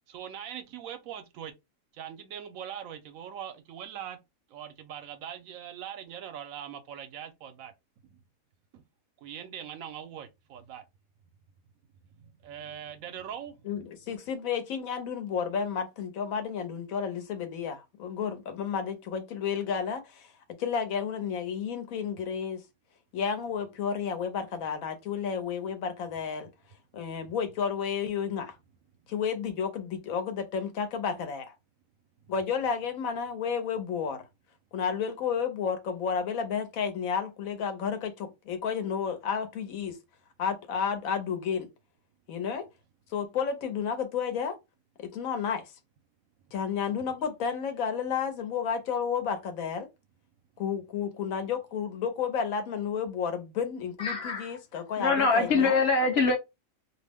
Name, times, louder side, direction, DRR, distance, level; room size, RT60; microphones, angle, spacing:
voice 1, 0.1-1.5 2.0-4.2 4.5-7.7 8.7-8.8 9.2-10.8 12.2-13.6, right 9 dB, 75° right, 1.0 m, -41 dB
voice 2, 13.6-20.3 20.6-22.6 23.1-26.5 26.9-28.6 29.1-31.5 32.3-34.2 34.7-40.0 40.4-41.7 42.3-42.7 43.1-44.6 45.0-45.7 46.5-49.9 50.6-55.8, left 7 dB, 80° left, 1.1 m, -31 dB
voice 3, 54.0-54.6 55.0-56.4, left 4 dB, 55° left, 0.8 m, -24 dB
2.7 x 2.0 x 3.4 m
omnidirectional pair, 1.4 m